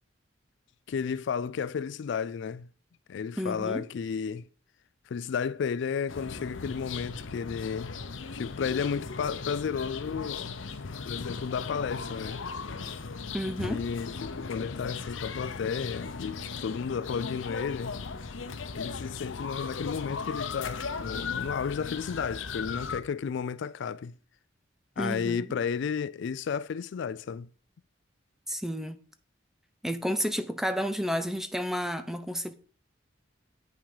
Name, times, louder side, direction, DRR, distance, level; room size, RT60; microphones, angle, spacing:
voice 1, 0.9-2.7 3.1-4.5 5.1-8.0 8.3-10.6 11.1-12.4 13.6-17.9 18.7-24.1 25.0-27.5, left 6 dB, 65° left, 0.4 m, -33 dB
voice 2, 3.4-3.8 13.3-13.8 25.0-25.5 28.5-29.0 29.8-32.5, equal, ahead, 0.6 m, -31 dB
sound 1, 6.1-23.0, left 5 dB, 85° left, 0.8 m, -37 dB
8.6 x 5.8 x 4.9 m
head